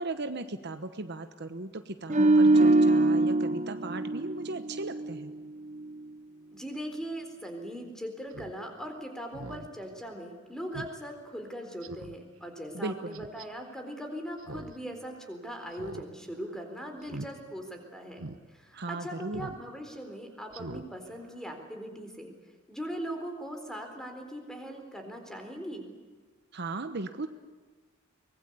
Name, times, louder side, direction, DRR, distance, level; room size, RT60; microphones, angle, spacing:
voice 1, 0.0-5.3 12.7-13.2 18.7-19.5 26.5-27.3, right 2 dB, 55° right, 9 dB, 1.1 m, -37 dB
sound 1, 2.1-5.4 5.7-5.9, right 2 dB, 35° right, 0.9 m, -23 dB
voice 2, 6.5-22.3 22.7-25.9, equal, 5° left, 4 dB, 4.0 m, -40 dB
Speech synthesizer, 8.3-8.5 8.9-9.0 9.3-9.7 10.1-10.2 10.7-10.9 11.3-11.4 11.8-12.2 13.1-13.5 14.4-14.8 15.0-15.1 15.7-16.1 16.3-16.6 17.0-17.3 17.7-17.8 18.2-18.4 19.3-19.6 19.9-20.1 20.5-20.8 21.2-21.3, right 2 dB, 85° right, 1.2 m, -42 dB
23.5 x 20.5 x 8.4 m, 1.4 s
head